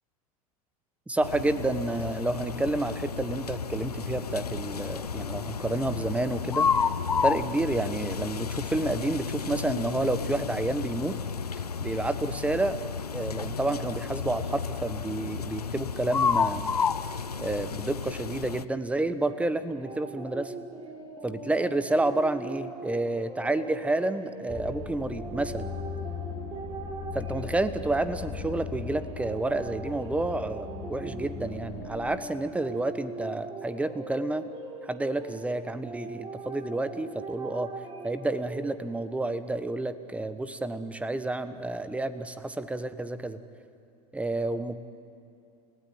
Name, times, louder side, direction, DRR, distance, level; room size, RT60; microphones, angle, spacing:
voice 1, 1.1-6.7 7.2-11.1 11.8-12.8 13.1-16.7 17.4-20.5 21.2-25.7 27.1-34.5 34.8-37.7 38.0-43.4 44.1-44.8, right 2 dB, 5° right, 12 dB, 1.3 m, -30 dB
sound 1, 1.2-18.7, left 6 dB, 90° left, 0.7 m, -31 dB
sound 2, 19.7-38.7, right 3 dB, 25° right, 4.3 m, -41 dB
sound 3, 24.5-32.2, left 6 dB, 10° left, 3.9 m, -39 dB
29.5 x 17.0 x 9.5 m, 2.7 s
hypercardioid pair, 90°, 19 cm